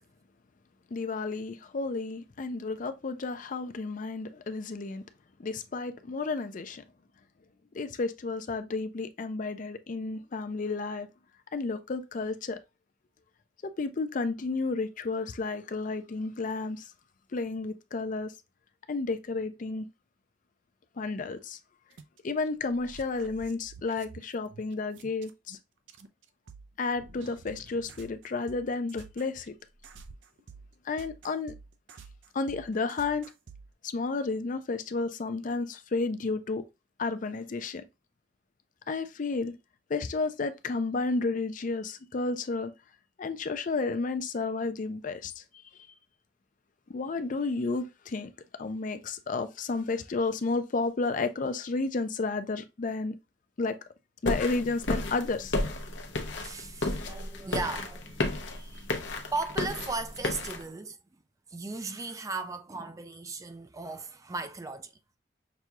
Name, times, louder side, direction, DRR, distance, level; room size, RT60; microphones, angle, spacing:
voice 1, 0.9-5.0 5.4-6.8 7.7-11.1 11.5-12.6 13.6-16.9 17.3-18.3 18.9-19.9 21.0-21.6 22.2-25.6 26.8-29.5 30.9-31.5 32.3-33.3 33.8-36.6 37.0-37.8 38.9-39.5 39.9-42.7 43.2-45.4 46.9-48.3 48.6-53.1 53.6-53.7 54.2-55.5, left 3 dB, 45° left, 0.4 m, -32 dB
sound 1, 21.9-22.2 22.5-25.6 25.9-33.7, right 4 dB, 85° right, 0.6 m, -50 dB
sound 2, 54.3-60.6, left 2 dB, 75° left, 0.8 m, -33 dB
voice 2, 56.4-58.9 59.3-61.0 61.5-64.9, right 3 dB, 20° right, 0.4 m, -37 dB
6.0 x 2.3 x 2.8 m
head